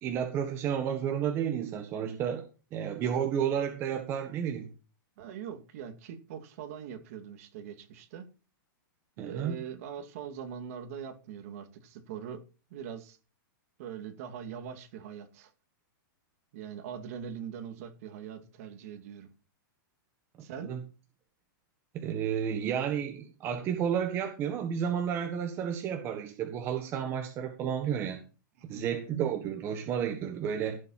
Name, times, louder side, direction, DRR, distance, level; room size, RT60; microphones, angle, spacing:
voice 1, 0.0-2.4 2.7-4.7 9.2-9.6 20.6-20.8 21.9-28.2 28.7-30.8, right 8 dB, 20° right, 1.5 m, -31 dB
voice 2, 5.2-8.3 9.2-12.4 12.7-13.2 13.8-15.5 16.5-19.3 20.4-20.7 28.6-28.9, right 8 dB, 40° right, 2.5 m, -42 dB
16.0 x 7.6 x 5.8 m
supercardioid pair, 170°, 11 cm